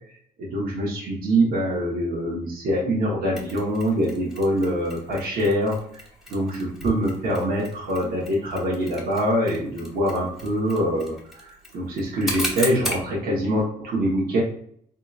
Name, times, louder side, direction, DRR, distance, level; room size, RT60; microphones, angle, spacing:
voice 1, 0.4-5.8 6.3-11.1 11.5-14.4, equal, 65° right, -5 dB, 1.2 m, -24 dB
Mechanisms, 3.4-13.1, left 1 dB, ahead, 1.2 m, -37 dB
3.6 x 2.9 x 2.4 m, 0.62 s
cardioid pair, 105°, 16 cm